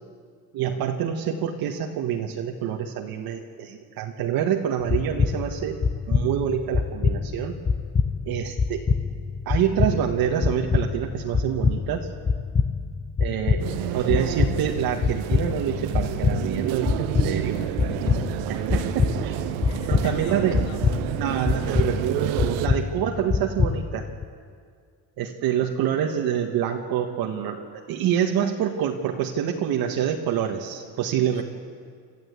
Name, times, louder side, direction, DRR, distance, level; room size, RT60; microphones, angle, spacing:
voice 1, 0.5-5.8 6.1-7.6 8.3-8.9 9.5-12.1 13.2-13.6 13.9-17.6 18.7-19.4 19.9-20.6 21.2-24.1 25.2-31.4, right 9 dB, 60° right, 1 dB, 1.8 m, -26 dB
sound 1, 4.8-24.2, left 5 dB, 15° left, 0.6 m, -26 dB
sound 2, 13.6-22.7, right 12 dB, 85° right, 1.3 m, -30 dB
voice 2, 17.6-18.3 19.5-21.6 31.3-31.4, left 6 dB, 40° left, 4 dB, 2.6 m, -43 dB
27.5 x 14.0 x 8.4 m, 2.1 s
cardioid pair, 125°, 42 cm